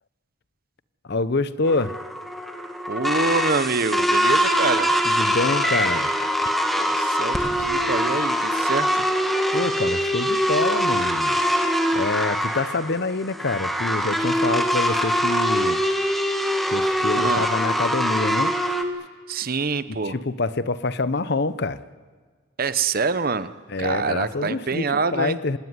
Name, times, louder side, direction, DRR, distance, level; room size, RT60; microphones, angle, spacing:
voice 1, 1.1-1.9 5.0-6.1 9.5-11.4 11.9-15.8 16.7-18.5 19.9-21.8 23.7-25.6, left 3 dB, 50° left, 15 dB, 0.7 m, -26 dB
sound 1, 1.7-18.8, equal, ahead, 1.6 m, -23 dB
voice 2, 2.9-4.9 6.9-9.0 17.2-17.4 19.3-20.2 22.6-23.5 23.8-25.4, right 4 dB, 45° right, 13 dB, 0.8 m, -25 dB
25.5 x 17.5 x 9.6 m, 1.5 s
head